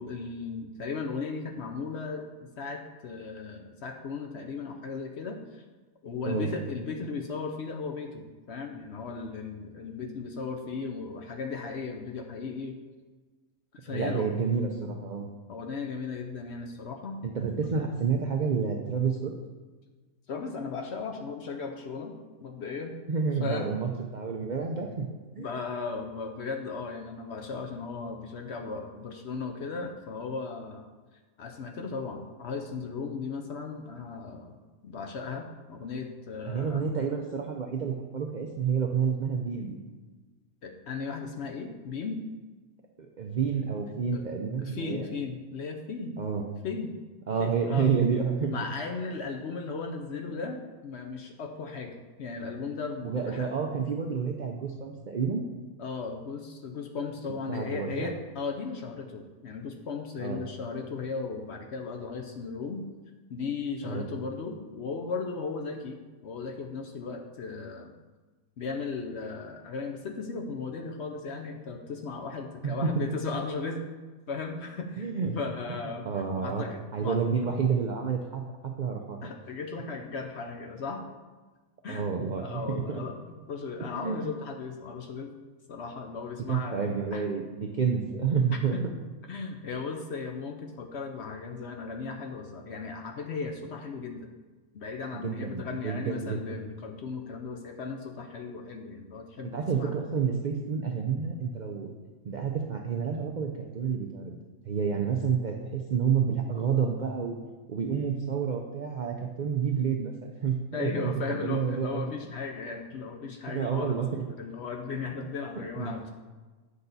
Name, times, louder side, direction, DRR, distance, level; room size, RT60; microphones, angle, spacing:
voice 1, 0.0-5.6 6.0-12.8 13.8-14.3 15.5-17.2 17.6-17.7 20.3-22.1 22.4-23.0 23.4-23.8 25.4-30.9 31.4-34.5 34.8-36.8 40.6-42.2 44.1-44.2 44.6-46.1 46.6-46.9 47.4-47.9 48.5-53.5 55.8-62.8 63.3-67.9 68.6-73.8 74.3-76.1 76.3-77.5 79.2-81.1 81.8-82.1 82.4-85.3 85.7-86.9 87.1-87.3 88.7-88.8 89.3-94.3 94.7-99.9 110.7-116.1, left 4 dB, 60° left, 3 dB, 0.8 m, -36 dB
voice 2, 13.9-15.3 17.2-19.3 23.1-25.5 36.5-39.8 43.0-45.1 46.2-46.4 47.3-48.6 53.0-55.4 57.5-58.1 60.2-60.4 63.8-64.0 72.6-73.1 75.0-75.4 76.1-76.7 76.9-79.3 81.9-83.0 83.9-84.3 86.5-88.8 95.1-96.6 99.5-101.9 102.2-104.4 104.6-107.3 107.7-112.0 113.5-114.2 115.8-115.9, right 6 dB, 75° right, 2 dB, 0.4 m, -29 dB
8.2 x 5.6 x 4.0 m, 1.3 s
omnidirectional pair, 1.6 m